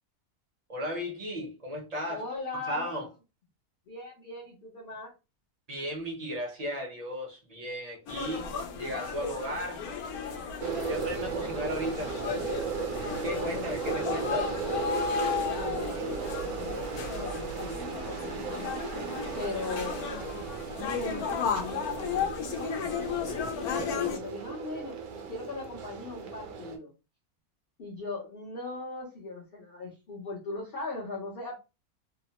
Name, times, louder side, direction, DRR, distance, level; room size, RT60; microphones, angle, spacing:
voice 1, 0.7-2.3 2.6-3.1 5.7-9.9 10.8-12.2 13.0-14.5, equal, 40° right, 0.6 m, -35 dB
voice 2, 2.1-3.0 3.9-5.1 13.4-13.6 15.5-19.0 19.4-20.0 20.9-25.0 25.3-26.9 27.8-31.5, left 3 dB, 50° left, 0.8 m, -39 dB
sound 1, 8.1-24.2, left 6 dB, 75° left, 1.1 m, -34 dB
sound 2, 10.6-26.8, right 5 dB, 65° right, 1.0 m, -36 dB
2.9 x 2.0 x 2.8 m
omnidirectional pair, 1.6 m